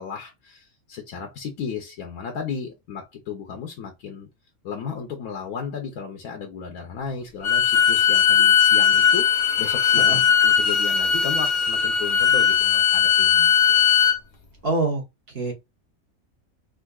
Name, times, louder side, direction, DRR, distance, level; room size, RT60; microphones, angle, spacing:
voice 1, 0.0-4.3 4.6-13.5, left 6 dB, 85° left, 1.1 m, -34 dB
Bowed string instrument, 7.4-14.2, left 8 dB, 60° left, 0.8 m, -18 dB
voice 2, 14.6-15.0 15.3-15.5, right 2 dB, 45° right, 1.1 m, -25 dB
3.6 x 2.6 x 2.2 m
omnidirectional pair, 1.5 m